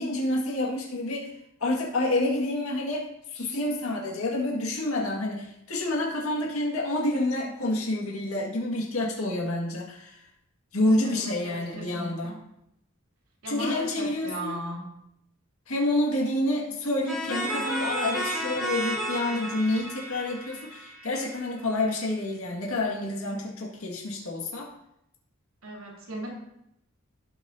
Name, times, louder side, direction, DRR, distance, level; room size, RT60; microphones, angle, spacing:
voice 1, 0.0-1.3 1.6-3.1 3.3-10.3 10.7-12.4 13.5-14.6 15.7-24.7, left 1 dB, 90° left, -2 dB, 2.0 m, -28 dB
voice 2, 11.0-12.4 13.4-14.9 25.6-26.3, right 1 dB, 75° right, -2 dB, 2.9 m, -37 dB
sound 1, 17.1-21.6, right 1 dB, ahead, 2.9 m, -32 dB
17.5 x 6.2 x 2.8 m, 0.80 s
head